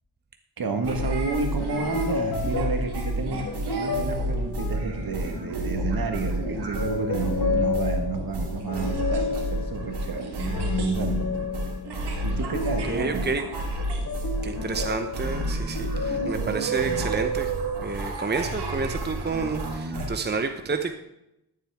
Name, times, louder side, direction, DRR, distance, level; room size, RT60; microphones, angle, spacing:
voice 1, 0.6-11.3 12.2-13.2 16.3-16.5, right 4 dB, 65° right, 5 dB, 1.7 m, -31 dB
sound 1, 0.8-20.1, right 1 dB, 90° right, 1.9 m, -30 dB
sound 2, 0.9-1.1 1.6-6.2 6.6-16.3, left 5 dB, 50° left, 1.6 m, -32 dB
voice 2, 12.9-13.4 14.4-17.5 17.8-20.9, right 4 dB, 25° right, 7 dB, 0.9 m, -29 dB
13.0 x 7.5 x 3.6 m, 0.86 s
cardioid pair, 55°, 39 cm